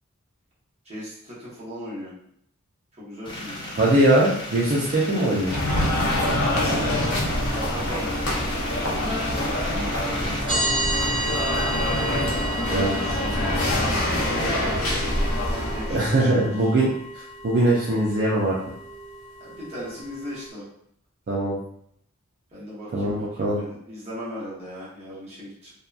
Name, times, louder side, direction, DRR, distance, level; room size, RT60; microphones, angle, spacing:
voice 1, 0.8-2.1 3.0-3.7 5.0-5.3 6.1-6.5 7.4-10.8 13.1-13.4 13.7-15.1 15.7-16.5 19.4-20.6 22.5-25.7, equal, 30° right, -8 dB, 0.9 m, -38 dB
sound 1, 3.2-10.4, left 1 dB, 20° left, 0.4 m, -35 dB
voice 2, 3.8-5.5 6.6-7.1 12.6-13.2 15.9-16.9 17.1-18.5 21.3-21.6 22.9-23.6, right 1 dB, 45° right, -5 dB, 0.4 m, -22 dB
sound 2, 5.4-16.1, left 1 dB, 65° left, 0.6 m, -25 dB
sound 3, 10.5-20.5, right 1 dB, 70° right, 1.3 m, -32 dB
2.7 x 2.1 x 2.3 m, 0.71 s
head